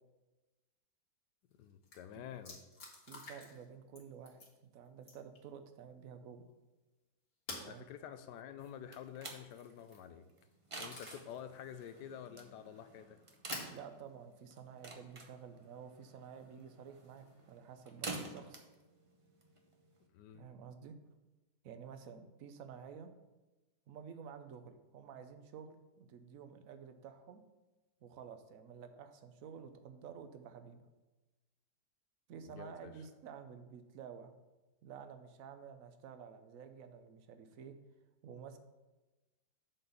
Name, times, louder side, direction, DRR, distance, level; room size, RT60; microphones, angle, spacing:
sound 1, 1.5-1.6 1.8-2.0 2.4-3.7 4.0-4.5 5.0-5.4 7.5-7.7 9.6-10.0 10.5-11.4 11.9-12.0 13.5-13.8 14.9-15.0 17.0-17.5, left 3 dB, 60° left, 2.1 m, -48 dB
voice 1, 1.6-2.6 7.6-10.3 10.8-13.2 20.1-20.5 32.4-32.9, left 9 dB, 80° left, 10 dB, 1.2 m, -49 dB
voice 2, 3.1-6.4 7.6-7.8 13.7-18.7 20.3-20.9 21.6-23.1 23.9-27.4 28.0-30.9 32.3-34.3 34.8-37.7 38.2-38.6, right 7 dB, 60° right, 8 dB, 1.0 m, -51 dB
sound 2, 8.6-20.1, right 2 dB, 35° right, 0.5 m, -50 dB
7.6 x 4.1 x 6.9 m, 1.1 s
omnidirectional pair, 1.8 m